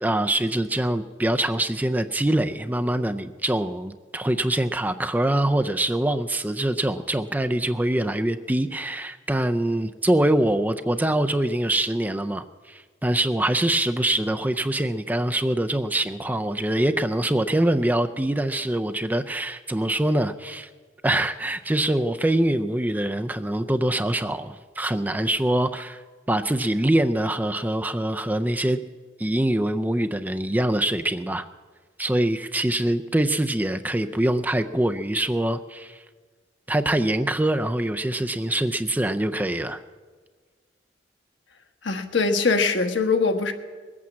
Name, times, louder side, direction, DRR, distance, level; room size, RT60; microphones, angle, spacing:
voice 1, 0.0-20.7 21.0-26.0 26.3-28.8 29.2-31.5 32.0-36.0 36.7-39.8, right 1 dB, 10° right, 0.4 m, -24 dB
voice 2, 41.8-43.5, left 4 dB, 80° left, 1.3 m, -22 dB
20.5 x 8.5 x 7.5 m
head